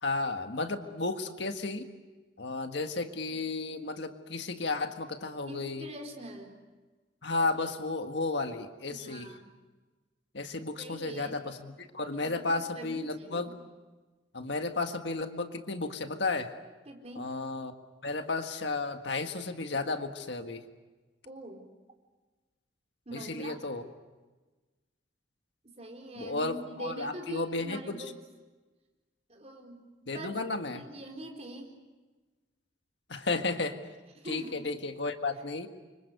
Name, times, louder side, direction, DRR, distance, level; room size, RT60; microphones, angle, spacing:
voice 1, 0.0-1.9 2.4-5.9 7.2-9.3 10.3-13.6 14.3-16.5 17.1-17.7 18.0-20.6 23.1-23.9 26.2-28.0 30.1-30.8 33.1-33.8 34.2-35.7, left 3 dB, 70° left, 6 dB, 1.8 m, -33 dB
voice 2, 5.5-6.6 8.9-9.5 10.8-11.4 12.1-13.5 16.9-17.3 21.2-21.7 23.1-23.6 25.6-28.2 29.3-30.3 30.7-31.7 34.2-34.7, right 1 dB, 35° right, 2 dB, 4.4 m, -43 dB
29.5 x 25.5 x 6.8 m, 1.2 s
head